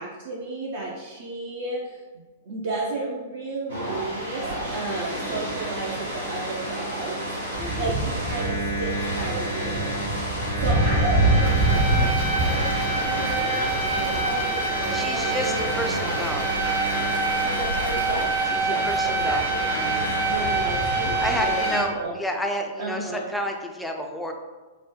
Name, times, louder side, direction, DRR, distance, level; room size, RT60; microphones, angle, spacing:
voice 1, 0.0-2.0 2.4-7.1 7.6-8.9 9.1-12.7 13.0-16.2 17.3-18.3 18.6-19.9 20.2-22.1 22.8-23.3, right 2 dB, 55° right, -4 dB, 0.5 m, -33 dB
sound 1, 3.7-21.8, right 2 dB, 75° right, 1.2 m, -27 dB
voice 2, 5.2-5.5 7.6-7.9 14.9-16.5 18.5-20.0 21.2-24.3, equal, 5° left, 2 dB, 0.3 m, -31 dB
sound 2, 7.6-17.3 18.3-21.4, right 1 dB, 30° right, 0.9 m, -28 dB
sound 3, 11.4-18.2, right 1 dB, 85° left, 0.7 m, -36 dB
3.9 x 2.1 x 2.9 m, 1.3 s
figure-of-eight pair, 105°, 0 cm